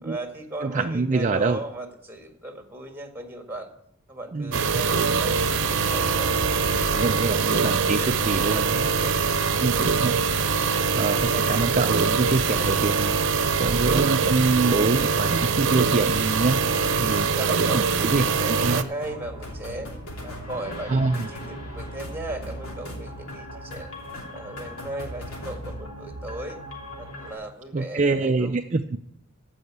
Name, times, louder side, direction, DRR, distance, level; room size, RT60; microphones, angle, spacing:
voice 1, 0.0-3.7 4.1-6.8 7.2-8.4 16.7-19.9 20.2-23.9 24.3-26.6 27.0-28.5, right 1 dB, 10° right, 5 dB, 1.7 m, -37 dB
voice 2, 0.6-1.6 4.3-4.5 6.9-8.9 9.6-10.2 10.9-13.2 13.5-16.6 17.0-18.8 20.9-21.3 27.7-29.0, right 3 dB, 35° right, 6 dB, 0.4 m, -25 dB
sound 1, 4.5-18.8, right 5 dB, 55° right, 0.8 m, -23 dB
sound 2, 19.0-27.3, equal, 75° left, 3.0 m, -38 dB
14.5 x 5.6 x 8.6 m, 0.75 s
head